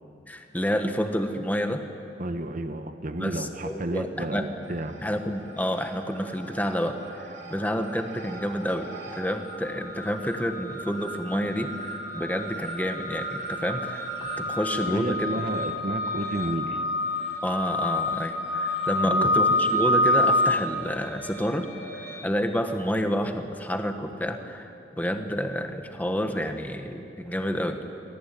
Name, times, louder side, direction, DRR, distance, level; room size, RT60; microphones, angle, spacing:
voice 1, 0.3-1.8 3.2-14.1 14.4-15.3 17.4-21.7 22.2-27.8, equal, 10° left, 6 dB, 1.4 m, -29 dB
voice 2, 2.2-4.9 14.9-16.8 19.0-19.3, right 1 dB, 45° right, 7 dB, 1.1 m, -31 dB
sound 1, 4.7-5.3 5.6-22.2, left 1 dB, 75° right, 3.3 m, -29 dB
24.5 x 18.5 x 9.2 m, 2.7 s
head